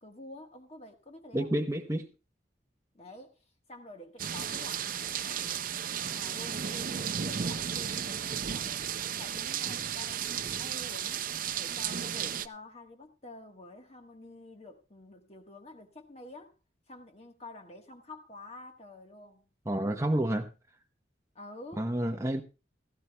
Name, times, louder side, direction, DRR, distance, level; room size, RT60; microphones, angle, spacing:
voice 1, 0.0-1.5 2.9-5.8 6.1-8.9 9.2-11.3 11.5-16.6 16.9-19.5 21.3-21.9, left 2 dB, 35° left, 1.3 m, -49 dB
voice 2, 1.3-2.1 19.7-20.5 21.8-22.4, right 1 dB, 15° right, 0.8 m, -29 dB
sound 1, 4.2-12.5, right 8 dB, 45° right, 0.5 m, -34 dB
16.5 x 15.0 x 2.2 m
head